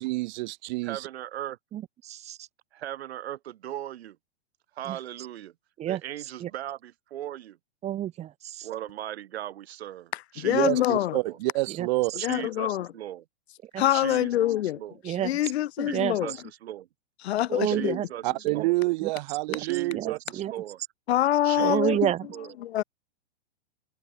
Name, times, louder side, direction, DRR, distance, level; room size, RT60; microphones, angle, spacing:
voice 1, 0.0-1.1 10.5-12.1 18.2-20.2, right 22 dB, 40° right, 2.4 m, -28 dB
voice 2, 0.8-1.6 2.7-4.2 4.7-5.5 5.9-7.6 8.6-10.8 11.2-11.4 12.2-13.2 13.9-15.0 15.8-16.9 17.6-18.2 18.5-18.7 19.6-20.8 21.4-22.0 22.3-22.5, right 12 dB, 60° right, 5.0 m, -38 dB
voice 3, 1.7-2.4 4.9-5.0 5.8-6.0 6.4-6.5 7.8-8.7 11.8-11.9 13.7-13.9 15.0-15.3 15.8-16.2 17.5-18.1 18.4-18.6 19.0-19.1 19.5-19.6 19.9-20.5 21.6-22.3, right 12 dB, 20° right, 2.4 m, -29 dB
voice 4, 10.4-11.2 12.2-12.9 13.8-14.8 15.2-16.4 17.2-18.0 21.1-22.1 22.6-22.8, left 13 dB, 65° left, 0.8 m, -25 dB
hypercardioid pair, 155°, 35 cm